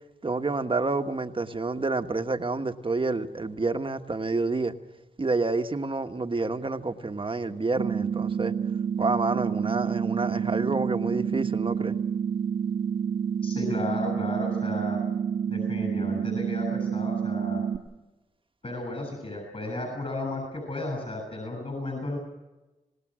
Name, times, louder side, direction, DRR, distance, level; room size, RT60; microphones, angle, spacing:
voice 1, 0.2-4.8 5.2-8.5 9.0-11.9, right 3 dB, 35° right, 7 dB, 1.4 m, -28 dB
sound 1, 7.8-17.8, right 7 dB, 70° right, 1.5 m, -28 dB
voice 2, 13.4-15.0 15.5-17.6 18.6-22.2, left 2 dB, 45° left, 3 dB, 7.6 m, -34 dB
26.5 x 18.5 x 6.3 m, 1.1 s
cardioid pair, 65°, 15 cm